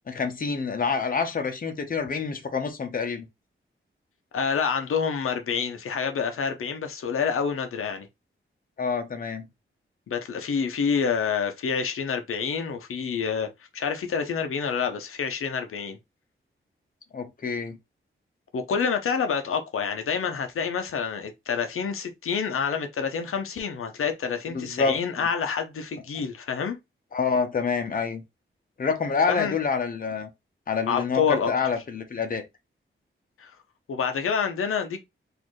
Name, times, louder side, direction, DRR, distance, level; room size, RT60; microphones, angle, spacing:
voice 1, 0.1-3.3 8.8-9.5 17.1-17.8 24.5-25.0 27.1-28.2 28.8-30.3 30.7-32.4, left 5 dB, 40° left, 0.7 m, -27 dB
voice 2, 4.3-8.1 10.1-16.0 18.5-26.8 29.3-29.6 30.9-31.5 33.4-33.5 33.9-35.0, left 6 dB, 90° left, 0.6 m, -27 dB
4.3 x 2.6 x 3.0 m
wide cardioid pair, 170°, 21 cm